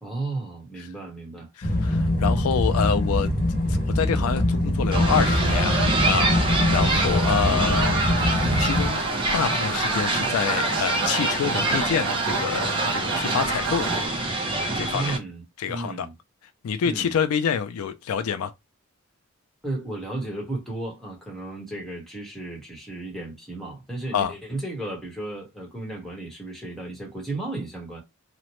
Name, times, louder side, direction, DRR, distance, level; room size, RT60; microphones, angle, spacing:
voice 1, 0.0-1.5 6.9-7.2 14.9-16.1 16.8-17.1 19.6-28.0, right 2 dB, ahead, 1.0 m, -34 dB
voice 2, 1.6-3.3 3.7-8.0 8.6-9.0 9.3-14.3 14.7-15.2 15.6-16.1 16.6-18.5 24.1-24.3, left 7 dB, 80° left, 0.4 m, -27 dB
sound 1, 1.6-8.9, left 1 dB, 40° left, 0.7 m, -23 dB
sound 2, 4.9-15.2, right 2 dB, 25° right, 0.6 m, -26 dB
sound 3, 4.9-14.1, right 3 dB, 65° right, 1.0 m, -31 dB
2.9 x 2.1 x 2.9 m
head